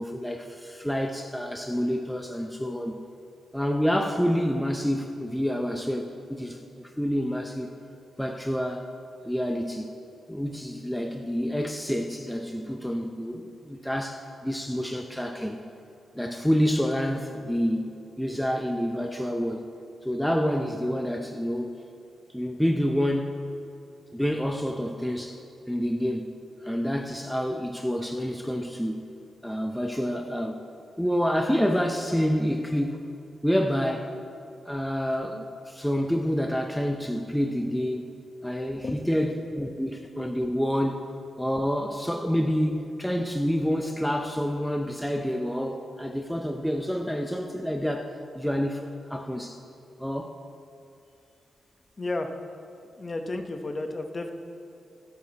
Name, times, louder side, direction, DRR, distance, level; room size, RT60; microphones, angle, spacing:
voice 1, 0.0-3.0 3.5-7.7 8.2-8.9 9.2-9.9 10.3-15.6 16.1-19.6 20.0-21.7 22.3-23.3 24.1-25.4 25.7-29.1 29.4-30.6 31.0-33.0 33.4-34.1 34.7-38.1 38.4-41.0 41.4-48.8 49.1-49.6 50.0-50.3, equal, ahead, 3 dB, 0.5 m, -28 dB
voice 2, 52.0-52.3 52.9-54.3, left 2 dB, 30° left, 5 dB, 0.8 m, -32 dB
25.0 x 8.5 x 2.9 m, 2.6 s
wide cardioid pair, 130°, 0 cm